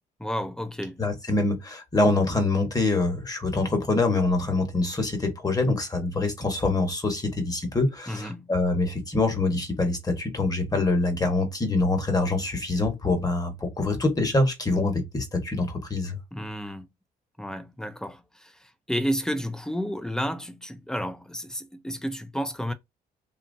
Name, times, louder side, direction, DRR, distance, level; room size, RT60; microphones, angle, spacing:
voice 1, 0.2-1.0 8.1-8.5 16.3-16.9 17.4-22.7, equal, 5° left, 0.6 m, -31 dB
voice 2, 1.0-16.2, left 2 dB, 20° left, 1.3 m, -25 dB
2.9 x 2.4 x 2.7 m
supercardioid pair, 75°, 16 cm